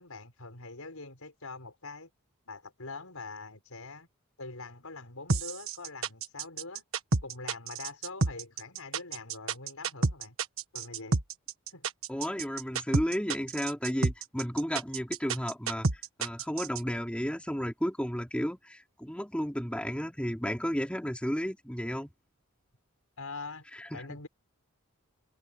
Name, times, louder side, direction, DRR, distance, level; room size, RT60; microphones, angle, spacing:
voice 1, 0.0-2.1 2.5-4.1 4.4-6.8 7.2-10.4 10.7-11.2 11.7-11.9 23.2-23.7 23.9-24.3, left 3 dB, 80° left, 5.5 m, -44 dB
sound 1, 5.3-16.8, right 3 dB, 65° right, 1.5 m, -29 dB
voice 2, 12.1-22.1 23.7-24.1, equal, 5° left, 3.8 m, -33 dB
head